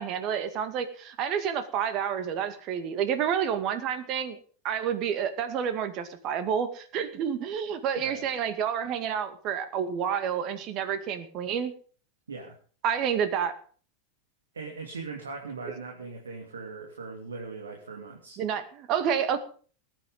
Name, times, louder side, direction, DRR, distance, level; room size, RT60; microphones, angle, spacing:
voice 1, 0.0-4.4 4.6-11.7 12.8-13.6 18.4-18.6 18.9-19.4, right 8 dB, 40° right, 11 dB, 2.2 m, -29 dB
voice 2, 14.5-18.4, right 4 dB, 75° right, 2 dB, 2.9 m, -40 dB
20.0 x 9.2 x 5.5 m, 0.42 s
figure-of-eight pair, 85°, 0 cm